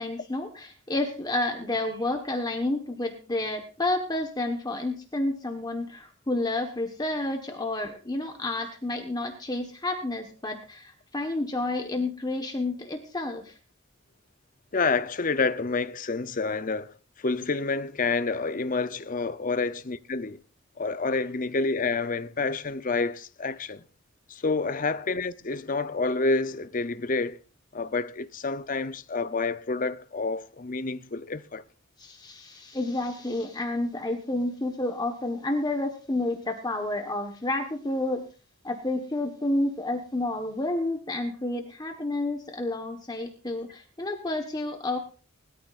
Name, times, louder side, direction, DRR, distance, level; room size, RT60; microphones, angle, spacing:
voice 1, 0.0-13.5 32.0-38.3 38.6-45.0, left 2 dB, 20° left, 1.3 m, -30 dB
voice 2, 14.7-20.4 20.8-23.8 24.3-27.4 27.7-31.6, left 3 dB, 40° left, 0.7 m, -28 dB
21.0 x 13.5 x 2.5 m
head